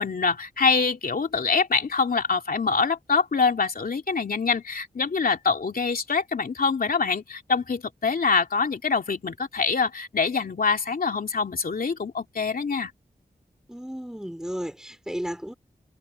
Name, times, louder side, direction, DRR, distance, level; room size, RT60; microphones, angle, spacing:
voice 1, 0.0-12.9, left 4 dB, 65° left, 2.8 m, -25 dB
voice 2, 13.7-15.5, equal, 5° right, 5.0 m, -33 dB
wide cardioid pair, 95°, 16 cm